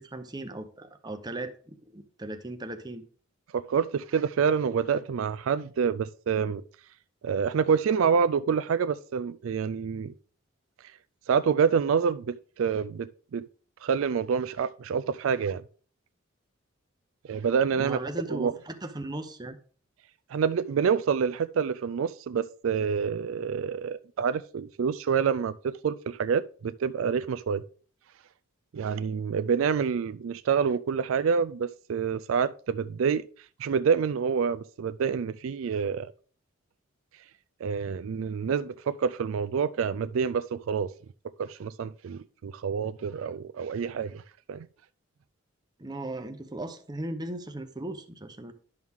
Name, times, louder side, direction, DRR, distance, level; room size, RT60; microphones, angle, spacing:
voice 1, 0.0-3.0 17.8-19.6 45.8-48.5, right 2 dB, 20° right, 0.8 m, -37 dB
voice 2, 3.5-6.6 7.2-10.1 11.3-13.4 13.8-15.6 17.3-18.0 18.3-18.6 20.3-27.6 28.7-33.2 33.6-36.1 37.6-40.9 41.4-44.2 44.5-44.7, right 6 dB, 75° right, 0.4 m, -27 dB
11.0 x 6.2 x 3.6 m
head